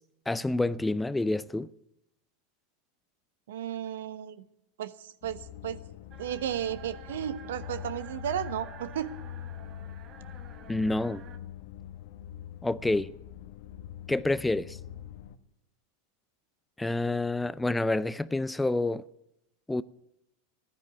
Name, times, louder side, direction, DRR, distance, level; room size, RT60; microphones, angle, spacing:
voice 1, 0.3-1.7 10.7-11.2 12.6-13.1 14.1-14.8 16.8-19.0 19.7-19.8, left 2 dB, 10° left, 0.5 m, -28 dB
voice 2, 3.5-4.4 4.8-5.8 6.2-9.1, right 10 dB, 80° right, 0.9 m, -34 dB
sound 1, 5.2-15.4, left 10 dB, 65° left, 1.0 m, -44 dB
sound 2, 6.1-11.4, right 8 dB, 40° right, 1.7 m, -50 dB
15.0 x 10.0 x 9.3 m
hypercardioid pair, 110°, 0 cm